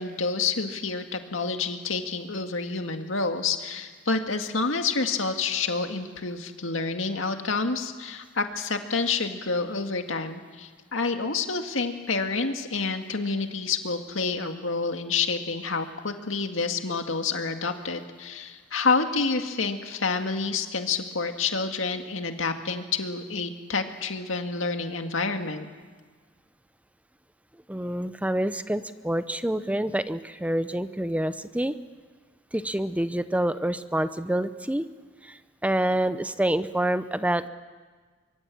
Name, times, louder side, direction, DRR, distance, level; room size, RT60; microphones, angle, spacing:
voice 1, 0.0-25.7, left 4 dB, 75° left, 5 dB, 2.1 m, -28 dB
voice 2, 27.7-31.7 32.5-34.9 35.2-35.4 35.6-37.5, right 1 dB, 5° right, 12 dB, 0.8 m, -27 dB
24.0 x 24.0 x 8.5 m, 1.5 s
head